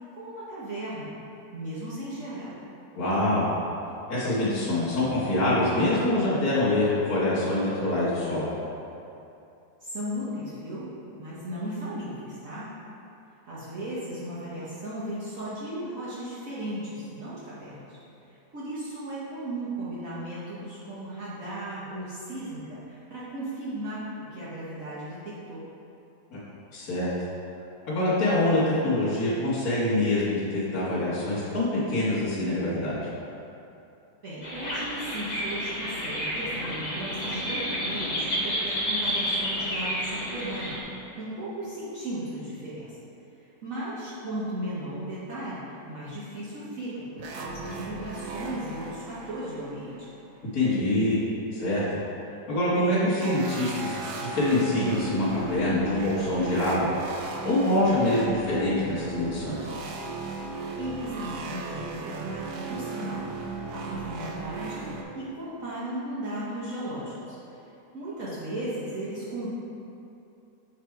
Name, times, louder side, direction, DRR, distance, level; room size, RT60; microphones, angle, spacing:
voice 1, 0.1-1.1 1.5-2.5 9.8-12.7 13.4-18.0 18.2-25.6 34.2-43.0 43.4-50.1 60.7-63.3 63.5-69.5, right 1 dB, 55° right, -10 dB, 1.3 m, -36 dB
voice 2, 2.9-3.5 4.1-8.5 26.3-26.4 26.7-27.1 27.9-33.0 50.5-51.2 51.5-51.8 52.5-56.9 57.4-59.7, left 1 dB, 60° left, -13 dB, 1.6 m, -25 dB
sound 1, 34.4-40.8, equal, 40° left, 0.6 m, -30 dB
sound 2, 47.2-50.4 53.2-65.0, right 4 dB, 75° right, 1.1 m, -37 dB
6.7 x 3.3 x 4.5 m, 2.7 s
omnidirectional pair, 1.8 m